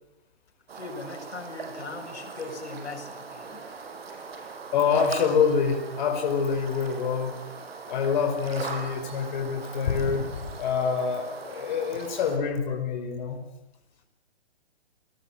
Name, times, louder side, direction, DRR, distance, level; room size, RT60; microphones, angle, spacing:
voice 1, 0.7-3.7, left 3 dB, 85° left, 5 dB, 7.0 m, -39 dB
sound 1, 0.7-12.4, right 4 dB, 65° right, 6.5 m, -40 dB
voice 2, 4.7-7.4 7.9-13.4, left 6 dB, 45° left, 3 dB, 5.0 m, -26 dB
29.5 x 20.5 x 7.7 m, 0.88 s
hypercardioid pair, 150°, 33 cm